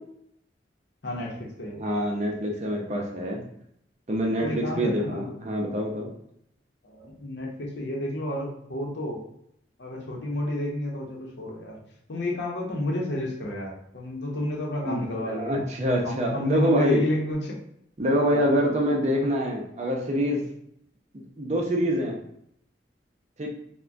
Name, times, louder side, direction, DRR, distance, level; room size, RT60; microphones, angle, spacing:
voice 1, 1.0-1.9 4.4-5.3 6.8-9.2 9.8-11.8 12.1-15.6 16.0-17.6 18.3-18.5, left 1 dB, 75° left, -1 dB, 0.7 m, -31 dB
voice 2, 1.8-3.4 4.1-6.1 14.8-17.0 18.0-20.4 21.1-22.1 23.4-23.5, equal, 40° right, 0 dB, 0.5 m, -25 dB
3.3 x 2.1 x 2.5 m, 0.72 s
head